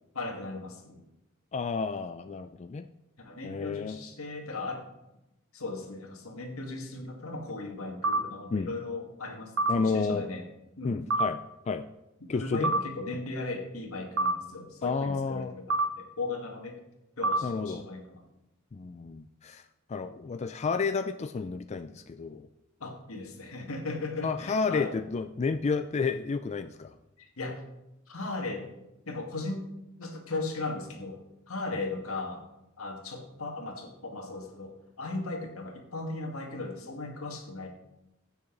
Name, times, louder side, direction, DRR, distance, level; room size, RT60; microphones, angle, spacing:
voice 1, 0.1-1.0 3.2-4.9 5.5-10.4 10.8-11.0 12.3-16.8 17.2-18.2 22.8-24.9 27.2-27.6 28.1-28.6 29.1-29.6 30.0-31.2 31.5-32.4 32.8-37.7, left 3 dB, 80° left, 2 dB, 2.0 m, -37 dB
voice 2, 1.5-2.9 3.4-4.0 8.5-8.7 9.7-10.2 10.8-11.4 11.7-11.9 12.3-12.7 14.8-15.5 17.4-17.8 18.7-19.6 19.9-22.5 24.2-26.9, left 4 dB, 30° left, 9 dB, 0.3 m, -31 dB
sound 1, 8.0-8.2 9.6-9.8 11.1-11.3 12.6-12.8 14.2-14.4 15.7-15.9 17.2-17.4, right 2 dB, 65° right, 0.8 m, -25 dB
16.0 x 6.9 x 3.9 m, 0.92 s
head